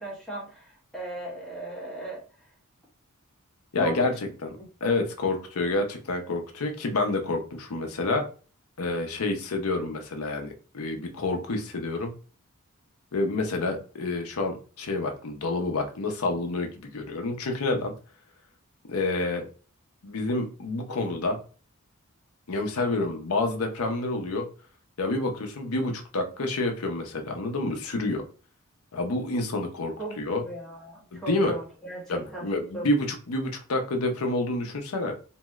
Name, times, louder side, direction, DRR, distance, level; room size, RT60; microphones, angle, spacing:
voice 1, 0.0-2.2 3.8-4.1 4.6-4.7 30.0-32.5 32.7-32.9, right 2 dB, ahead, -5 dB, 1.3 m, -36 dB
voice 2, 3.7-4.1 4.4-4.5 4.8-8.2 8.8-12.1 13.1-17.9 18.9-19.4 20.0-21.4 22.5-24.5 25.0-28.2 28.9-30.4 31.1-31.6 32.1-35.1, left 2 dB, 75° left, 4 dB, 0.6 m, -28 dB
3.0 x 2.7 x 2.3 m, 0.37 s
head